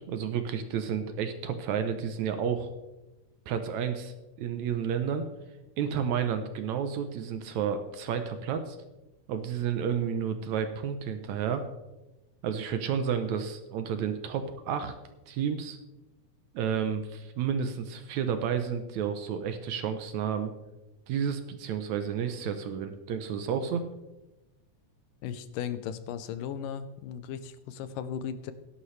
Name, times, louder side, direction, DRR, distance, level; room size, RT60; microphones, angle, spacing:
voice 1, 0.0-2.7 3.5-5.3 5.8-8.8 9.3-11.7 12.4-14.9 15.3-15.8 16.5-20.5 21.1-23.8, right 7 dB, 70° right, 8 dB, 1.9 m, -31 dB
voice 2, 25.2-28.5, left 8 dB, 85° left, 12 dB, 2.4 m, -36 dB
16.5 x 11.5 x 3.2 m, 1.0 s
omnidirectional pair, 3.8 m